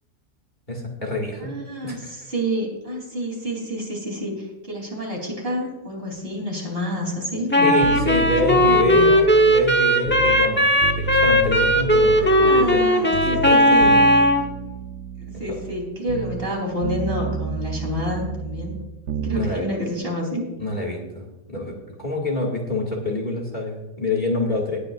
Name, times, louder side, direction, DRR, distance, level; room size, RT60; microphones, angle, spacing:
voice 1, 0.7-1.5 1.8-2.1 7.6-13.8 15.5-15.6 19.3-19.6 20.6-24.8, left 2 dB, 35° left, 0 dB, 2.3 m, -27 dB
voice 2, 1.4-7.8 8.5-9.1 12.2-14.0 15.2-18.8 19.2-20.4, equal, 40° right, -1 dB, 3.9 m, -28 dB
Wind instrument woodwind instrument, 7.5-14.5, equal, 10° left, 1.0 m, -17 dB
sound 1, 7.8-10.5 10.8-12.9 13.1-16.6 16.8-19.4 19.7-19.8, right 5 dB, 60° right, 1.0 m, -31 dB
19.5 x 9.7 x 2.5 m, 1.0 s
omnidirectional pair, 1.5 m